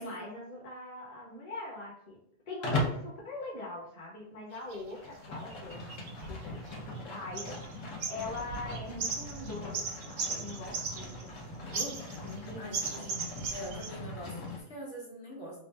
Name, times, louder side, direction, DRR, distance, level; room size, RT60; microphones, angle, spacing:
voice 1, 0.0-2.2 2.5-5.8 6.2-12.6 12.9-13.1, left 2 dB, 35° left, -4 dB, 1.0 m, -43 dB
Livestock farm animals working animals, 2.6-3.1 4.8-14.6, left 1 dB, 75° left, 1.2 m, -39 dB
sound 1, 4.6-4.8 5.5-7.0 7.4-7.7 8.0-11.4 11.7-12.4 12.7-13.9, right 5 dB, 85° right, 1.0 m, -37 dB
voice 2, 12.6-13.2 13.5-15.6, equal, 55° left, -4 dB, 1.4 m, -44 dB
3.2 x 2.6 x 3.3 m, 0.66 s
omnidirectional pair, 1.3 m